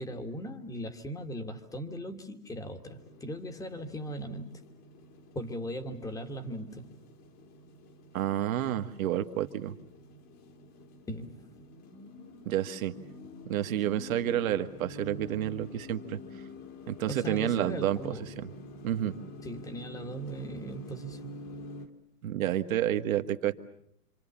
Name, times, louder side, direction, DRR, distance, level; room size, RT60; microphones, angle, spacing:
voice 1, 0.0-4.6 5.3-6.9 11.1-11.5 17.1-18.3 19.4-21.4, equal, 5° left, 7 dB, 1.7 m, -39 dB
sound 1, 2.8-21.9, left 1 dB, 30° left, 2.1 m, -48 dB
voice 2, 8.1-9.8 12.5-12.9 13.5-16.2 16.9-18.5 18.8-19.1 22.2-23.5, right 11 dB, 60° right, 8 dB, 1.7 m, -30 dB
27.0 x 26.0 x 7.2 m, 0.70 s
hypercardioid pair, 145°, 47 cm